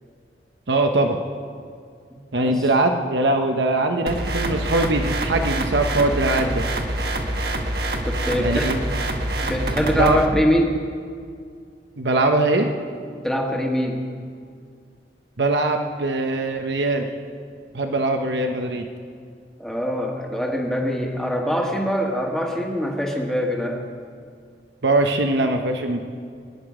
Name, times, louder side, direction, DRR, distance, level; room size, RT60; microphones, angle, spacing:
voice 1, 0.7-1.2 2.3-6.6 8.4-8.8 10.0-10.2 12.0-12.7 15.4-17.1 17.7-18.9 24.8-26.0, right 2 dB, 80° right, 4 dB, 0.9 m, -21 dB
sound 1, 4.1-10.3, right 1 dB, 60° right, 1.3 m, -26 dB
voice 2, 8.1-8.9 9.4-10.8 13.2-14.1 19.6-23.8, equal, 5° left, 0 dB, 1.5 m, -24 dB
23.0 x 10.0 x 4.9 m, 2.2 s
head